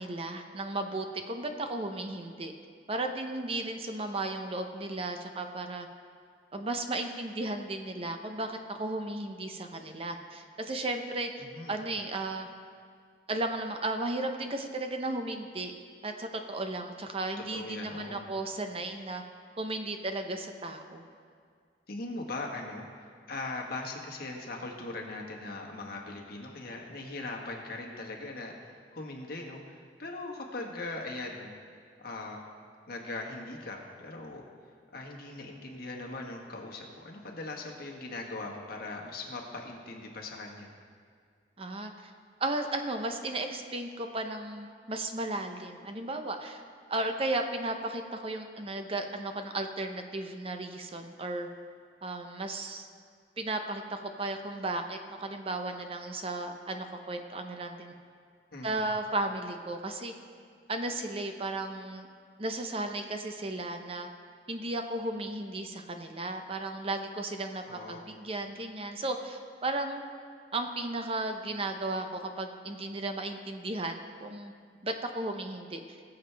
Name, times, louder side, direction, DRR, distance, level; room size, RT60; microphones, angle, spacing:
voice 1, 0.0-2.5 2.9-5.9 6.5-12.5 13.3-15.7 16.0-19.2 19.6-21.0 41.6-42.1 42.4-46.6 46.9-51.5 52.0-52.9 53.4-57.9 58.6-60.1 60.7-62.1 62.4-64.1 64.5-70.0 70.5-74.5 74.8-76.0, right 2 dB, 35° right, 5 dB, 0.7 m, -35 dB
voice 2, 11.4-11.8 17.5-18.3 21.9-31.5 32.0-32.4 32.9-34.4 34.9-40.7 58.5-58.9 67.7-68.1, left 2 dB, 60° left, 0 dB, 1.6 m, -40 dB
21.0 x 7.1 x 3.4 m, 2.1 s
head